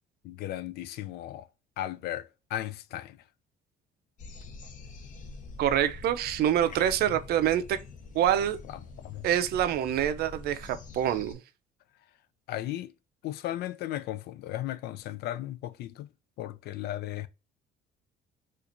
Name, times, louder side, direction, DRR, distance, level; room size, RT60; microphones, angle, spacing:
voice 1, 0.2-1.5 1.8-3.2 7.1-7.2 8.7-8.8 9.0-9.2 12.5-12.9 13.2-16.1 16.4-17.3, left 13 dB, 70° left, 0.4 m, -36 dB
sound 1, 4.2-11.3, left 3 dB, 50° left, 0.8 m, -45 dB
voice 2, 5.6-7.8 8.1-8.6 9.2-11.4, right 10 dB, 70° right, 0.5 m, -26 dB
4.3 x 2.5 x 2.5 m
cardioid pair, 110°, 17 cm